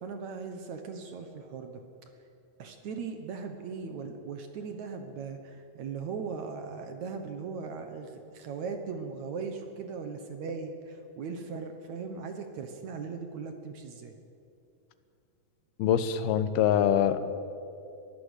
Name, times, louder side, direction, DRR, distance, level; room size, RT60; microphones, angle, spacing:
voice 1, 0.0-1.8 2.6-14.1, right 5 dB, 60° right, 6 dB, 2.1 m, -38 dB
voice 2, 15.8-17.5, left 9 dB, 90° left, 12 dB, 2.9 m, -25 dB
21.5 x 15.0 x 8.3 m, 2.6 s
omnidirectional pair, 4.3 m